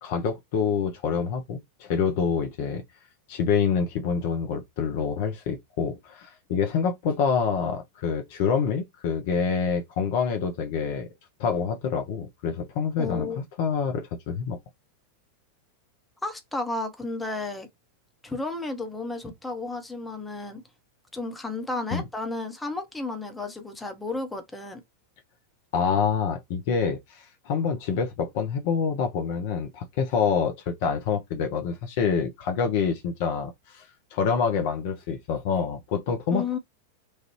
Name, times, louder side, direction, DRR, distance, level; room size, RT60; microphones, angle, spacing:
voice 1, 0.0-2.8 3.3-11.1 11.4-13.3 13.6-14.6 21.9-22.0 25.7-33.9 34.1-36.6, left 6 dB, 50° left, 0.7 m, -26 dB
voice 2, 13.0-13.4 16.2-17.7 18.2-20.6 21.1-24.8 36.3-36.6, left 3 dB, 10° left, 0.9 m, -32 dB
3.1 x 2.4 x 3.1 m
figure-of-eight pair, 90°, 0 cm